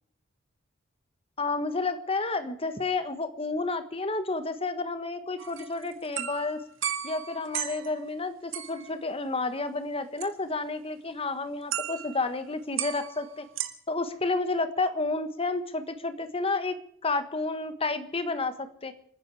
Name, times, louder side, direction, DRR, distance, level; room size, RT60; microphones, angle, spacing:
voice 1, 1.4-6.6 7.0-13.5 13.9-18.9, left 3 dB, 30° left, 11 dB, 1.5 m, -30 dB
sound 1, 5.4-8.0 8.5-8.9 10.2-10.3 11.7-12.3 12.8-13.7, right 10 dB, 80° right, 1.9 m, -34 dB
29.0 x 10.0 x 4.9 m, 0.67 s
head